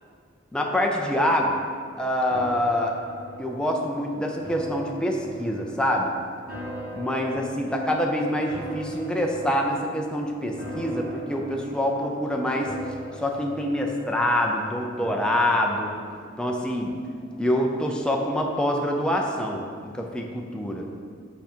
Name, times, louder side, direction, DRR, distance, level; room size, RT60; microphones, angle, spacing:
voice 1, 0.5-1.6 2.0-3.0 3.4-6.1 6.9-12.7 13.2-15.9 16.4-16.9 17.4-20.9, equal, 5° left, 0 dB, 0.5 m, -25 dB
sound 1, 2.3-17.6 18.0-18.1, equal, 50° right, 1.8 m, -41 dB
5.8 x 5.0 x 4.4 m, 2.1 s
head